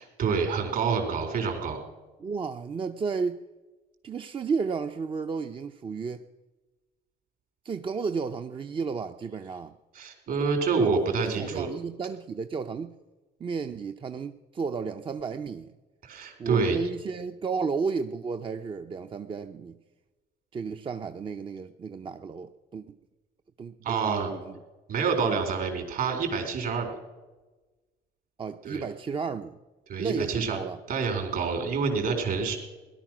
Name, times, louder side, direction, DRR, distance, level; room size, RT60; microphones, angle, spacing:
voice 1, 0.2-1.8 9.9-11.7 16.0-16.8 23.8-24.3 24.9-26.9 28.6-28.8 29.9-30.6 30.9-32.6, right 5 dB, 60° right, 4 dB, 4.1 m, -27 dB
voice 2, 2.2-3.4 4.0-6.3 7.6-9.7 10.7-12.9 13.4-15.7 16.4-19.8 20.5-23.0 23.6-24.5 25.2-25.4 28.4-29.6 30.0-30.8, right 5 dB, 30° right, 7 dB, 0.6 m, -33 dB
17.5 x 11.5 x 6.1 m, 1.2 s
cardioid pair, 110°, 17 cm